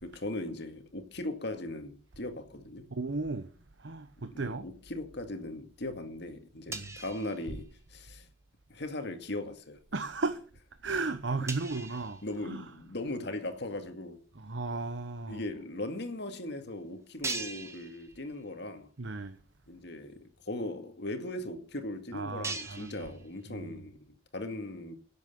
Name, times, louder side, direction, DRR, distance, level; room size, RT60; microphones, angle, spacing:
voice 1, 0.0-2.8 4.3-8.3 8.7-9.8 12.2-14.2 15.3-18.9 19.7-25.0, left 1 dB, 65° left, 2.2 m, -39 dB
voice 2, 2.9-3.5 3.8-4.7 6.7-7.0 7.5-7.6 9.9-10.4 10.8-12.7 14.3-15.4 19.0-19.4 22.1-23.1 23.5-23.8, right 3 dB, 75° right, 1.0 m, -35 dB
sound 1, 6.6-8.2 8.4-8.7 9.2-9.5 10.1-10.2 10.5-10.6 10.8-10.9 11.5-13.1 13.7-13.8 14.9-15.0 15.2-15.3 16.0-16.1 16.5-16.6 17.2-18.7 19.0-19.1 19.6-19.7 19.9-23.7, right 3 dB, 15° right, 1.7 m, -43 dB
11.5 x 8.3 x 8.3 m
head